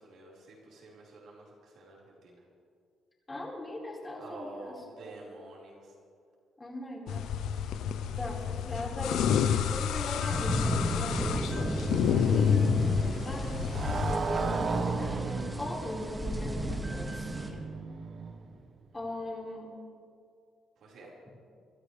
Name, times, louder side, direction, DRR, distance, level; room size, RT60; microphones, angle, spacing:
voice 1, 0.0-2.4 4.2-5.9 19.0-19.4 20.8-21.1, right 2 dB, 75° right, -5 dB, 4.7 m, -49 dB
voice 2, 3.3-4.8 6.6-7.3 8.2-9.4 9.7-11.4 11.9-13.6 14.1-17.6 18.9-19.8, left 1 dB, 20° left, -4 dB, 4.7 m, -39 dB
sound 1, 7.1-14.2, left 7 dB, 85° left, 0.6 m, -29 dB
sound 2, 9.4-17.5, right 1 dB, 20° right, 2.1 m, -35 dB
Motorcycle, 11.2-18.7, right 4 dB, 50° right, 1.0 m, -37 dB
25.0 x 13.5 x 3.4 m, 2.3 s
cardioid pair, 90°, 0 cm